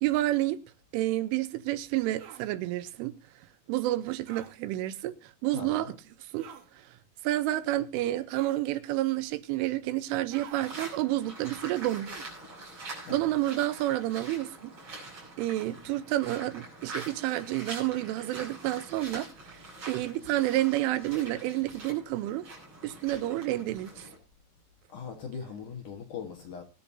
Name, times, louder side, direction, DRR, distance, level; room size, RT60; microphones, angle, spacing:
voice 1, 0.0-0.6 0.9-3.1 3.7-6.0 6.3-6.4 7.2-12.1 12.8-14.7 15.4-19.6 19.9-22.4 22.8-23.9, right 15 dB, 85° right, 3.5 m, -29 dB
sound 1, 2.2-2.5 4.3-4.5 6.4-6.7 8.3-8.7 10.3-10.6 12.0-12.4, right 9 dB, 65° right, 2.5 m, -47 dB
voice 2, 5.5-5.9 13.0-13.3 24.9-26.6, left 6 dB, 60° left, 2.3 m, -40 dB
sound 2, 10.5-24.2, right 2 dB, 30° right, 7.1 m, -45 dB
21.5 x 10.5 x 2.8 m
omnidirectional pair, 5.5 m